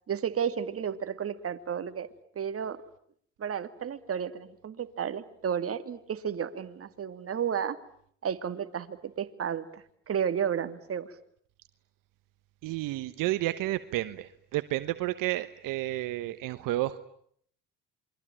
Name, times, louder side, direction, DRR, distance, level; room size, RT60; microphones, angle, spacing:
voice 1, 0.1-2.1 2.4-2.8 3.4-7.8 8.2-11.1, right 8 dB, 45° right, 10 dB, 2.4 m, -32 dB
voice 2, 12.6-17.0, right 16 dB, 75° right, 12 dB, 1.3 m, -31 dB
27.5 x 23.5 x 9.0 m, 0.64 s
supercardioid pair, 80°, 33 cm